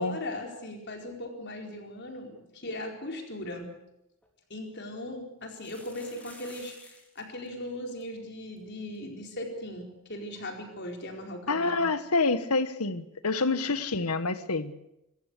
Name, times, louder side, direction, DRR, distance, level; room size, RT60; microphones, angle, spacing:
voice 1, 0.0-3.7 4.5-11.9, left 1 dB, 50° left, 3 dB, 4.5 m, -38 dB
sound 1, 4.2-4.3 5.4-7.2 7.5-7.6 7.8-8.0 8.6-8.7 9.0-9.1 11.1-11.2, left 1 dB, 5° left, 3.7 m, -51 dB
voice 2, 11.5-14.7, left 3 dB, 85° left, 13 dB, 1.4 m, -27 dB
26.5 x 14.5 x 8.3 m, 0.86 s
head